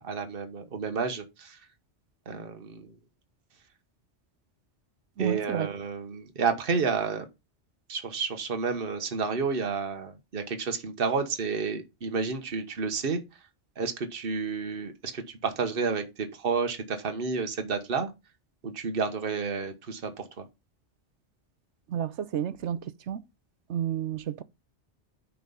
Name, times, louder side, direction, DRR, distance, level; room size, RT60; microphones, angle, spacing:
voice 1, 0.0-1.6 2.3-2.9 5.2-7.3 7.9-13.2 13.8-18.1 18.6-20.4, right 5 dB, 50° right, 1.4 m, -30 dB
voice 2, 5.2-5.7 21.9-23.2 23.7-24.4, right 9 dB, 75° right, 1.0 m, -31 dB
9.4 x 4.7 x 5.5 m
omnidirectional pair, 1.2 m